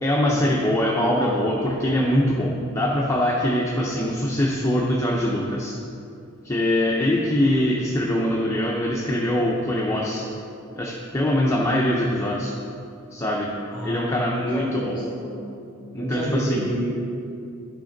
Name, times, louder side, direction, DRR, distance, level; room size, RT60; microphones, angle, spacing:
voice 1, 0.0-5.7 6.4-10.2 10.8-12.5 13.1-13.5 13.8-15.0 15.9-16.7, left 1 dB, 15° left, -3 dB, 0.6 m, -23 dB
voice 2, 13.7-15.6 16.0-17.3, equal, 10° right, -13 dB, 1.8 m, -29 dB
10.5 x 5.1 x 3.9 m, 2.5 s
head